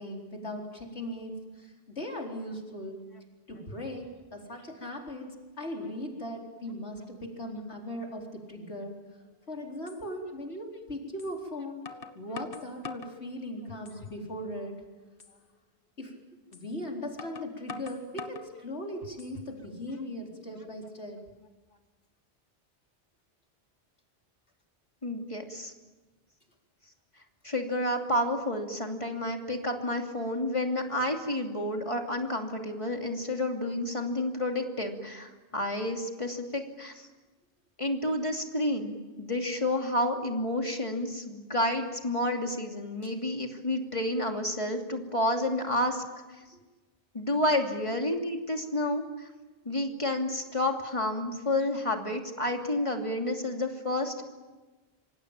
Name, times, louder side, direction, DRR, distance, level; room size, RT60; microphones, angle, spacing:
voice 1, 0.0-3.0 3.5-8.9 9.5-11.8 12.1-14.8 16.0-16.1 16.5-21.2 43.0-43.1 46.5-46.6, left 1 dB, 80° left, 1 dB, 4.4 m, -39 dB
sound 1, 9.3-9.4 9.9-10.0 11.2-11.3 11.9-13.2 13.7-14.2 14.6-14.7 15.2-15.4 16.5-16.7 17.2-18.5 19.0-19.6, left 4 dB, 55° left, 1.5 m, -43 dB
voice 2, 25.0-25.7 27.4-37.1 37.8-46.0 47.1-49.3 49.6-54.2, left 1 dB, 30° left, 3 dB, 2.9 m, -30 dB
26.0 x 25.5 x 9.0 m, 1.2 s
omnidirectional pair, 1.1 m